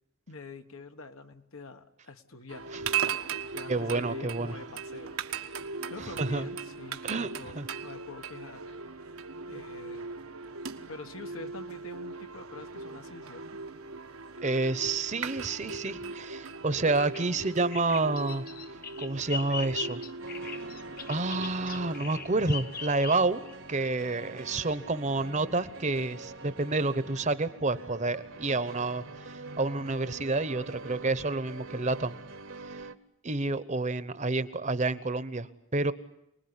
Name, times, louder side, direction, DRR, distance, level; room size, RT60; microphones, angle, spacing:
voice 1, 0.3-5.5 5.9-8.7 9.5-10.1 10.9-13.6, left 3 dB, 75° left, 7 dB, 1.6 m, -46 dB
sound 1, 2.5-22.0, right 5 dB, 85° right, 1.5 m, -38 dB
voice 2, 3.7-4.5 6.2-6.5 7.0-7.3 7.5-7.7 14.4-18.4 19.0-20.1 21.1-23.4 23.7-32.2 33.2-35.5 35.7-35.9, right 3 dB, 35° right, 14 dB, 1.0 m, -29 dB
Bird vocalization bird call bird song, 17.0-23.5, left 6 dB, 45° left, 1.2 m, -40 dB
sound 2, 20.2-32.9, right 3 dB, 60° right, 1.3 m, -45 dB
28.5 x 20.5 x 9.8 m, 0.80 s
head